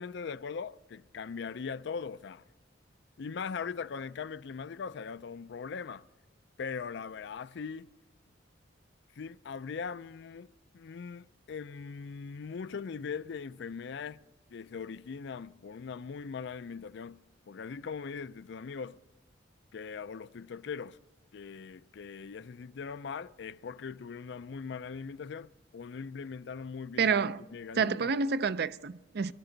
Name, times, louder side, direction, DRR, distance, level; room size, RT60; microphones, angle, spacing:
voice 1, 0.0-2.4 3.2-6.1 6.6-7.9 9.2-14.2 14.5-19.0 19.7-21.0 21.3-28.1, left 5 dB, 65° left, 0.4 m, -40 dB
voice 2, 27.0-27.4 27.8-29.3, right 5 dB, 55° right, 0.4 m, -28 dB
23.5 x 13.0 x 3.9 m
head